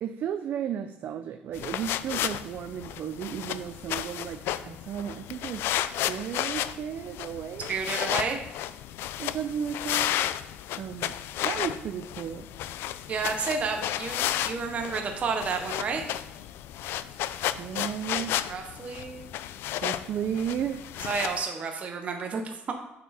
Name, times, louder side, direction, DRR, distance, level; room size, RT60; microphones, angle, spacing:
voice 1, 0.0-5.7 6.1-7.7 9.2-10.1 10.8-11.2 11.4-12.5 17.6-18.6 19.8-20.9, right 8 dB, 50° right, 8 dB, 0.4 m, -34 dB
sound 1, 1.5-21.4, left 12 dB, 75° left, 0.3 m, -33 dB
voice 2, 7.7-8.4 13.1-16.0 18.5-19.3 21.0-22.7, right 5 dB, 35° right, 3 dB, 0.8 m, -31 dB
9.4 x 4.8 x 4.1 m, 0.92 s
cardioid pair, 160°, 4 cm